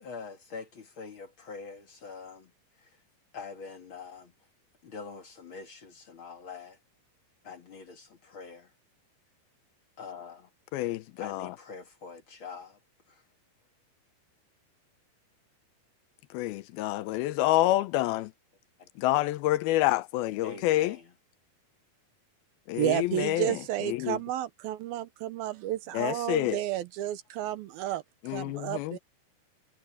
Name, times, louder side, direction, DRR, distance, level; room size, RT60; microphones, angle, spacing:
voice 1, 0.0-2.5 2.8-3.0 3.3-4.3 4.8-6.8 7.4-8.7 10.0-10.5 11.2-12.8 13.1-13.2 18.8-18.9 20.4-21.1, left 5 dB, 40° left, 2.2 m, -44 dB
voice 2, 10.7-11.5 16.3-18.3 19.0-21.0 22.7-24.2 25.9-26.6 28.2-29.0, left 16 dB, 85° left, 2.5 m, -28 dB
voice 3, 22.8-28.0 28.3-29.0, right 13 dB, 75° right, 2.7 m, -31 dB
omnidirectional pair, 4.4 m